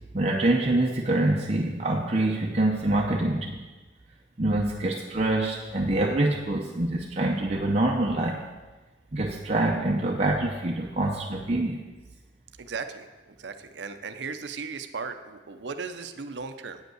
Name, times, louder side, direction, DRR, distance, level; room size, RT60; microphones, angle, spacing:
voice 1, 0.1-3.6 4.4-8.5 9.1-11.8, right 2 dB, 35° right, 0 dB, 0.6 m, -25 dB
voice 2, 12.6-16.8, right 5 dB, 70° right, 8 dB, 0.6 m, -37 dB
9.2 x 5.3 x 7.8 m, 1.2 s
head